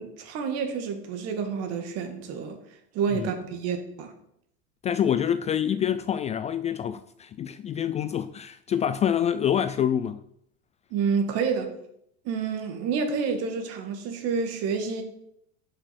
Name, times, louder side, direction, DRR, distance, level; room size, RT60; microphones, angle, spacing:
voice 1, 0.0-2.6 2.9-4.1 10.9-11.8 12.2-15.0, right 5 dB, 55° right, 2.4 m, -29 dB
voice 2, 4.8-10.2, left 9 dB, 25° left, 0.3 m, -26 dB
11.0 x 6.7 x 6.2 m
supercardioid pair, 140°, 30 cm